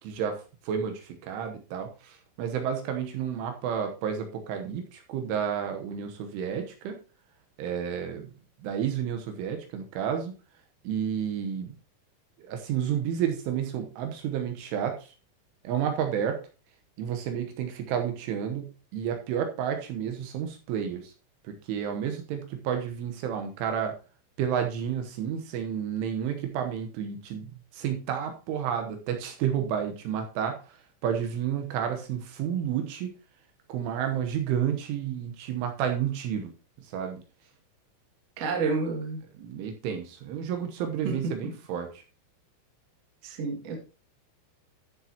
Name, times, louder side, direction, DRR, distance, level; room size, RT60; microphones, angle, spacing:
voice 1, 0.0-7.0 7.6-8.3 8.6-10.3 10.8-11.7 12.4-15.1 15.6-16.4 17.0-21.1 21.4-24.0 24.4-33.1 33.7-36.5 36.8-37.2 39.4-42.0, right 8 dB, 75° right, 5 dB, 3.4 m, -31 dB
voice 2, 38.4-39.2 41.0-41.1 43.2-43.8, right 4 dB, 50° right, 1 dB, 2.0 m, -29 dB
14.0 x 6.7 x 2.9 m, 0.33 s
omnidirectional pair, 6.0 m